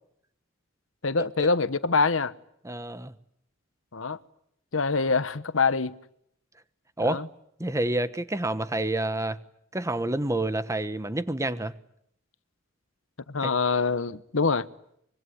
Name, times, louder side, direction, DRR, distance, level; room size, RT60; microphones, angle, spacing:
voice 1, 1.0-2.3 3.9-4.2 4.7-5.9 7.0-7.3 13.3-14.6, left 4 dB, 80° left, 1.1 m, -25 dB
voice 2, 2.6-3.1 7.0-7.2 7.6-9.4 9.7-11.8 13.4-13.5, right 1 dB, 15° right, 1.2 m, -28 dB
24.5 x 23.5 x 10.0 m
head